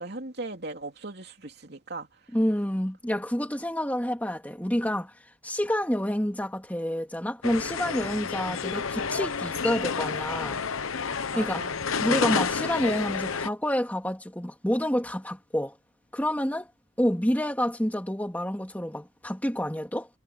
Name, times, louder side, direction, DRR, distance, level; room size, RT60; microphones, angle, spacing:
voice 1, 0.0-2.1 11.3-11.8, right 2 dB, 50° right, 3.4 m, -38 dB
voice 2, 2.3-5.1 5.4-10.6 11.4-11.7 12.0-15.8 16.1-16.7 17.0-20.1, equal, 10° left, 2.3 m, -28 dB
sound 1, 7.4-13.5, left 5 dB, 85° left, 0.9 m, -30 dB
head